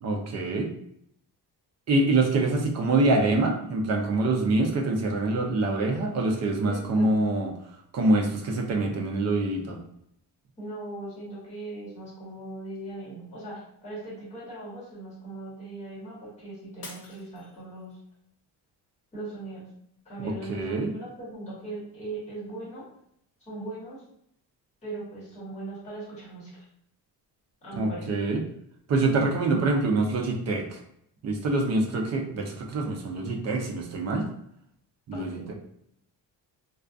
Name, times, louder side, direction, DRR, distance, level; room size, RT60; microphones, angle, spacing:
voice 1, 0.0-0.7 1.9-7.5 7.9-9.8 20.2-20.9 27.8-28.4 28.9-30.8 31.2-34.3 35.1-35.5, right 2 dB, 45° right, 2 dB, 0.4 m, -25 dB
voice 2, 6.7-7.2 10.6-18.0 19.1-19.7 20.0-22.8 23.5-24.0 24.8-26.7 27.6-28.1 35.1-35.5, right 2 dB, 15° left, -8 dB, 1.2 m, -39 dB
Shatter, 16.8-18.1 18.6-19.1 19.6-19.7, left 3 dB, 75° left, 0.8 m, -46 dB
2.3 x 2.3 x 2.4 m, 0.74 s
cardioid pair, 170°, 40 cm